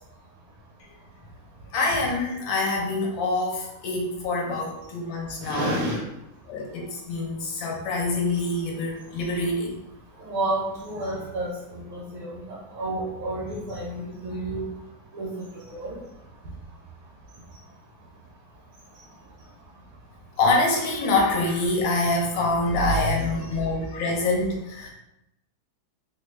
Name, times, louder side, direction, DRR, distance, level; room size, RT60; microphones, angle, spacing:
voice 1, 1.7-5.8 6.5-9.8 20.4-24.9, left 2 dB, 70° left, -1 dB, 1.3 m, -25 dB
voice 2, 5.4-6.0 10.2-14.7 15.1-15.3 15.7-16.0, right 1 dB, 75° right, -5 dB, 1.5 m, -30 dB
3.4 x 2.2 x 3.1 m, 0.87 s
omnidirectional pair, 2.3 m